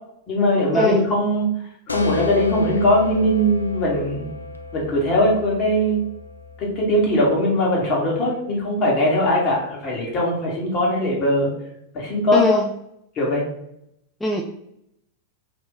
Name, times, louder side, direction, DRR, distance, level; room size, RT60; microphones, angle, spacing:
voice 1, 0.3-1.5 1.9-4.3 4.7-6.0 6.6-11.5 11.9-12.4 13.2-13.4, left 1 dB, 35° left, -3 dB, 1.3 m, -20 dB
sound 1, 1.9-7.3, left 2 dB, 80° left, 0.4 m, -33 dB
voice 2, 12.3-12.7 14.2-14.4, left 1 dB, 5° left, 0 dB, 0.3 m, -20 dB
2.8 x 2.5 x 3.7 m, 0.76 s
figure-of-eight pair, 90°, 0 cm